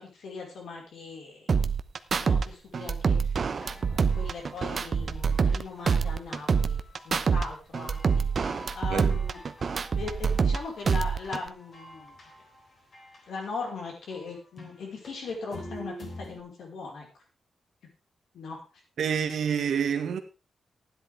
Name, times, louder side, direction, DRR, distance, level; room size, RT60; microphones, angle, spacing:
voice 1, 0.0-1.5 2.2-6.8 7.0-9.4 9.9-12.2 13.3-17.1 18.3-18.6, left 4 dB, 80° left, 5.0 m, -39 dB
sound 1, 1.5-2.4 2.7-5.6 5.9-7.4 7.7-10.6 10.9-11.5, right 5 dB, 40° right, 0.8 m, -26 dB
sound 2, 3.4-6.2 6.5-7.6 7.9-13.7 14.1-16.4, equal, 40° left, 3.8 m, -48 dB
voice 2, 19.0-20.2, right 7 dB, 80° right, 1.8 m, -27 dB
16.0 x 10.5 x 3.6 m
wide cardioid pair, 165°, 0 cm